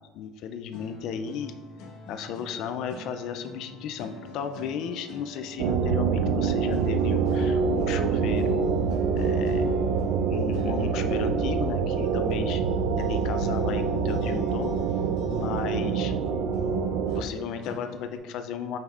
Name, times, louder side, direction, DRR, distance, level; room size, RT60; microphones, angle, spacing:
voice 1, 0.0-1.6 2.1-8.7 9.1-9.7 10.2-12.6 13.0-14.7 15.3-16.1 17.1-18.8, left 7 dB, 50° left, 8 dB, 0.4 m, -34 dB
sound 1, 0.7-18.2, left 1 dB, 70° left, 1.2 m, -44 dB
sound 2, 5.6-17.2, right 5 dB, 65° right, 0.4 m, -25 dB
8.0 x 5.3 x 2.5 m, 1.3 s
cardioid pair, 170°, 0 cm